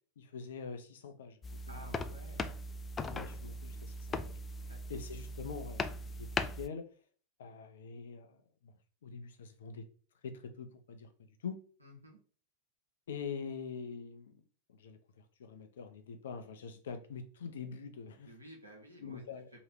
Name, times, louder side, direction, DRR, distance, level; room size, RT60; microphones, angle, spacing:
voice 1, 0.2-1.4 1.7-1.8 3.1-4.4 4.9-6.9 7.4-8.7 9.0-9.9 10.2-11.1 11.4-11.6 13.1-14.3 14.8-15.0 15.4-18.3 19.0-19.5, left 5 dB, 60° left, 0.6 m, -44 dB
sound 1, 1.4-6.7, left 2 dB, 20° left, 0.3 m, -39 dB
voice 2, 1.7-2.5 4.6-4.8 11.8-12.2 18.2-19.3, equal, 80° right, 1.2 m, -53 dB
3.1 x 2.8 x 4.5 m
figure-of-eight pair, 90°, 0 cm